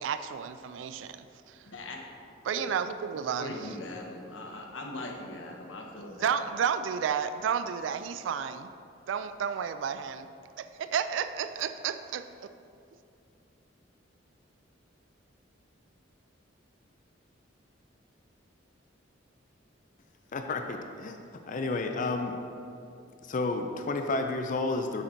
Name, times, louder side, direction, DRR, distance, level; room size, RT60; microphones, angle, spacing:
voice 1, 0.0-1.6 2.4-3.5 6.2-8.7 9.1-10.3 10.6-12.5, right 7 dB, 75° right, 11 dB, 0.3 m, -32 dB
voice 2, 1.6-2.0 3.4-6.4, left 2 dB, 85° left, 1 dB, 1.0 m, -40 dB
voice 3, 20.3-21.2 21.5-22.4 23.2-25.0, left 3 dB, 45° left, 5 dB, 0.4 m, -31 dB
8.0 x 5.9 x 3.9 m, 2.6 s
head